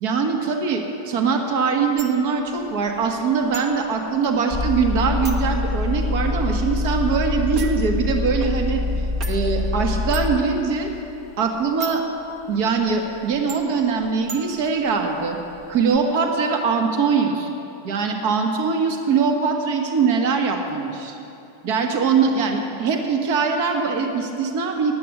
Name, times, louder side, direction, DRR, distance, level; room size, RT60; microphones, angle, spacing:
voice 1, 0.0-8.8 9.3-10.9 11.4-12.0 12.5-15.4 15.7-17.5 17.8-21.2 21.6-24.9, right 5 dB, 45° right, 3 dB, 1.6 m, -22 dB
sound 1, 2.0-16.0, right 4 dB, 30° right, 1.3 m, -43 dB
sound 2, 4.5-10.4, left 2 dB, 10° right, 1.3 m, -24 dB
10.0 x 8.5 x 9.5 m, 2.8 s
figure-of-eight pair, 90°, 0 cm